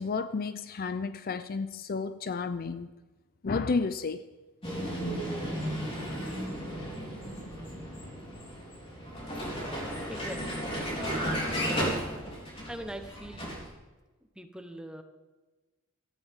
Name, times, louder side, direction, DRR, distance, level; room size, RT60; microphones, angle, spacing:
voice 1, 0.0-2.9 3.4-4.3, left 4 dB, 45° left, 0.5 m, -31 dB
Vehicle, 4.6-13.7, equal, 25° left, 3.8 m, -34 dB
voice 2, 10.1-10.7 12.7-13.6 14.3-15.0, right 1 dB, 5° right, 1.1 m, -42 dB
17.0 x 13.5 x 3.7 m
head